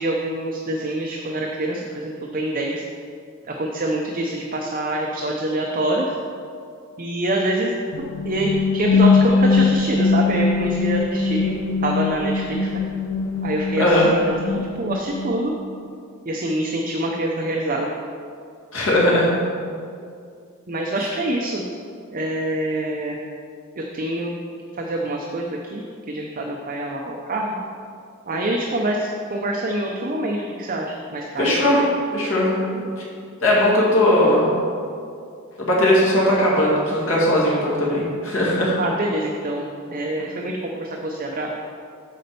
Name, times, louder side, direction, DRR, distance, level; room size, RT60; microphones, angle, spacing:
voice 1, 0.0-2.8 3.5-6.1 7.0-7.7 8.0-11.5 11.8-12.6 13.4-15.5 16.3-17.9 20.7-21.6 22.1-23.2 23.8-24.3 24.8-27.5 28.3-31.9 38.8-41.5, right 1 dB, 40° right, 0 dB, 0.6 m, -25 dB
sound 1, 7.9-15.7, left 4 dB, 85° left, 0.7 m, -21 dB
voice 2, 13.8-14.1 18.7-19.3 31.4-31.8 32.1-32.6 33.4-34.5 35.6-38.7, left 1 dB, 60° left, -6 dB, 2.2 m, -18 dB
8.3 x 4.3 x 6.8 m, 2.3 s
head